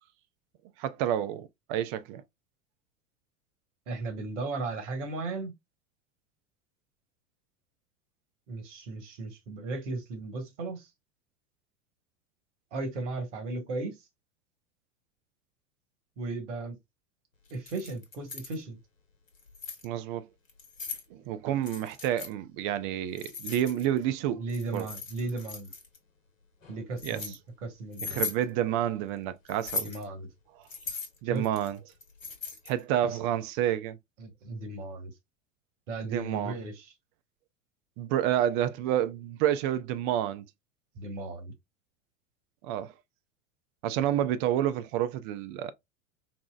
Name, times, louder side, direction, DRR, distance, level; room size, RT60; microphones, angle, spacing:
voice 1, 0.8-2.2 19.8-20.3 21.1-24.4 24.7-24.9 27.0-27.2 28.0-29.9 31.2-31.8 32.7-34.0 36.0-36.6 38.0-40.4 42.6-42.9 43.8-45.7, right 11 dB, 40° right, 0.4 m, -29 dB
voice 2, 3.9-5.5 8.5-10.9 12.7-14.0 16.2-16.8 17.5-18.8 24.4-25.7 26.7-27.3 27.6-28.3 29.8-30.3 31.3-31.4 33.1-33.2 34.2-35.1 35.9-36.9 40.9-41.5, right 3 dB, 65° right, 1.3 m, -36 dB
Keys jangling, 17.5-18.6 19.3-19.9 20.5-21.1 21.6-22.3 23.2-24.0 24.5-26.0 26.6-27.4 27.9-28.4 29.5-30.0 30.7-32.8, left 4 dB, 80° left, 1.0 m, -38 dB
4.1 x 2.0 x 2.3 m
figure-of-eight pair, 80°, 39 cm